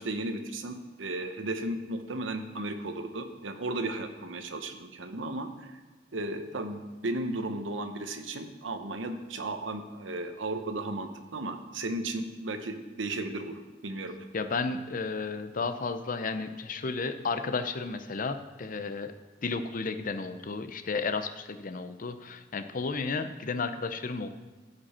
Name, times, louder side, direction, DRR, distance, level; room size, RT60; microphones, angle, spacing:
voice 1, 0.0-5.8 6.1-14.1, right 2 dB, 90° right, 7 dB, 0.9 m, -35 dB
voice 2, 14.3-19.1 19.4-24.3, left 4 dB, 45° left, 9 dB, 0.6 m, -33 dB
15.0 x 5.3 x 4.3 m, 1.2 s
head